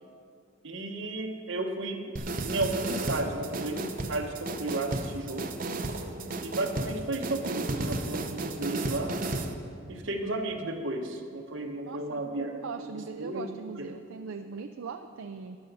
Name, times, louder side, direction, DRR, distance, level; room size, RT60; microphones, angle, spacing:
voice 1, 0.6-2.0 2.4-5.5 6.4-9.2 9.9-12.5 12.8-13.5 13.7-13.9, right 2 dB, 65° right, 2 dB, 1.3 m, -33 dB
sound 1, 2.2-9.5, right 2 dB, 45° right, 0.7 m, -33 dB
voice 2, 11.8-15.6, right 5 dB, 80° right, 7 dB, 0.4 m, -40 dB
14.0 x 11.0 x 4.2 m, 2.3 s
head